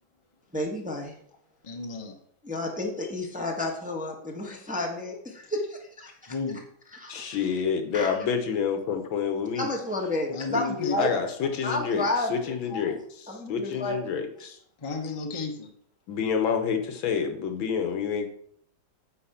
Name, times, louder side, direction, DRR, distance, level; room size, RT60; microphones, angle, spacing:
voice 1, 0.5-1.1 2.4-5.6 6.0-6.3 6.9-7.4 7.9-8.1 9.6-11.1 11.6-12.5 13.3-14.0, left 1 dB, 5° right, 0 dB, 1.0 m, -31 dB
voice 2, 1.6-2.2 4.4-4.5 6.3-6.6 10.3-11.0 11.4-11.5 12.7-12.9 14.8-15.7, left 4 dB, 20° left, 2 dB, 0.8 m, -33 dB
voice 3, 7.1-9.7 10.5-10.6 11.0-12.9 13.3-14.6 16.1-18.3, left 6 dB, 90° left, 6 dB, 1.9 m, -28 dB
8.7 x 4.9 x 5.8 m, 0.65 s
omnidirectional pair, 2.1 m